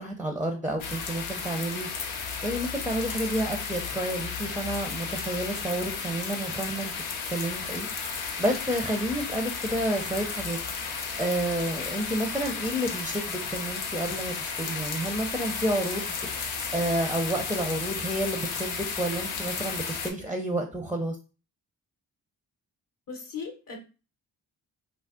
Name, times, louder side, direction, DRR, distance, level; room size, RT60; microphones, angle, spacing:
voice 1, 0.0-1.9 2.4-6.9 7.3-7.9 8.4-10.6 11.2-16.1 16.7-21.2, right 1 dB, 5° right, 4 dB, 0.5 m, -30 dB
sound 1, 0.8-20.1, left 5 dB, 90° left, 0.6 m, -33 dB
voice 2, 23.1-23.8, left 5 dB, 45° left, 3 dB, 0.8 m, -37 dB
2.5 x 2.0 x 3.5 m, 0.34 s
supercardioid pair, 40°, 46 cm